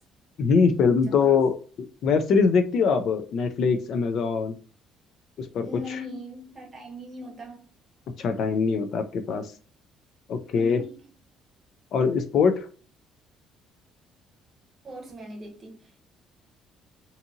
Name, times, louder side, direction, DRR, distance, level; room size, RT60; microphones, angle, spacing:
voice 1, 0.4-4.5 5.4-6.0 8.2-9.5 10.3-10.8 11.9-12.7, left 5 dB, 50° left, 0.3 m, -23 dB
voice 2, 1.0-1.4 5.6-7.6 10.6-10.9 14.8-16.1, left 1 dB, 25° right, 0.8 m, -40 dB
2.7 x 2.5 x 2.5 m
cardioid pair, 170°, 0 cm